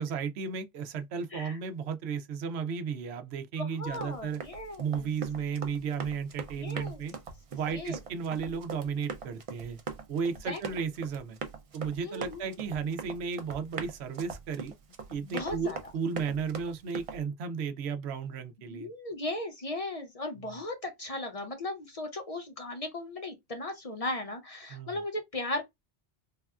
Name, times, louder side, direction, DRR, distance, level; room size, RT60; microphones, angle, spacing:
voice 1, 0.0-4.4 4.8-7.1 7.5-9.8 10.1-11.4 11.7-14.7 15.1-18.9 20.4-20.6 24.7-25.0, right 6 dB, 90° right, 0.8 m, -34 dB
voice 2, 3.6-5.1 6.6-7.0 7.7-8.0 10.5-10.6 12.0-12.6 15.2-15.8 18.7-25.6, left 2 dB, 45° left, 0.6 m, -37 dB
Run, 3.9-17.2, right 5 dB, 45° right, 0.5 m, -42 dB
3.4 x 2.3 x 2.3 m
omnidirectional pair, 1.1 m